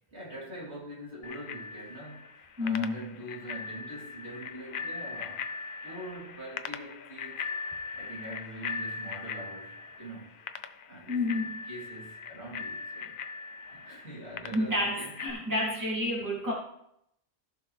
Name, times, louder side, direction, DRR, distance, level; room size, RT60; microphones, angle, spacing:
voice 1, 0.1-2.2 2.6-5.5 5.8-7.5 7.9-10.3 10.9-13.2 13.7-15.1, right 1 dB, 85° right, -6 dB, 3.5 m, -43 dB
Bicycle bell, 1.2-15.3, left 5 dB, 60° left, 0.7 m, -40 dB
voice 2, 2.6-2.9 11.1-11.6 14.5-16.5, left 1 dB, 15° right, -5 dB, 2.4 m, -30 dB
14.5 x 6.0 x 3.3 m, 0.77 s
omnidirectional pair, 1.1 m